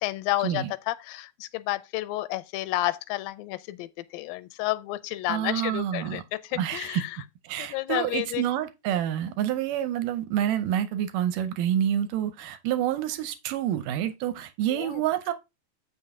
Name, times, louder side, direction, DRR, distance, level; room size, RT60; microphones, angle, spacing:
voice 1, 0.0-7.2 7.6-8.4 14.7-15.0, left 17 dB, 90° left, 2.3 m, -31 dB
voice 2, 5.3-6.2 6.6-7.0 7.4-15.3, right 11 dB, 80° right, 2.1 m, -28 dB
7.8 x 5.5 x 3.5 m
omnidirectional pair, 4.0 m